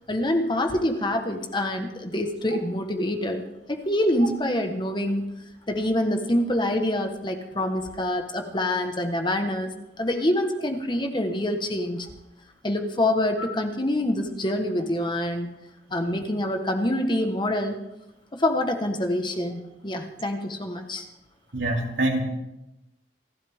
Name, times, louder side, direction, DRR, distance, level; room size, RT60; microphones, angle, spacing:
voice 1, 0.1-3.4 3.7-5.2 5.7-9.7 10.0-12.1 12.6-15.5 15.9-17.8 18.3-21.1, left 1 dB, 25° left, 5 dB, 1.3 m, -26 dB
voice 2, 21.5-22.2, right 1 dB, 75° right, 0 dB, 2.8 m, -25 dB
27.5 x 12.0 x 3.6 m, 0.92 s
head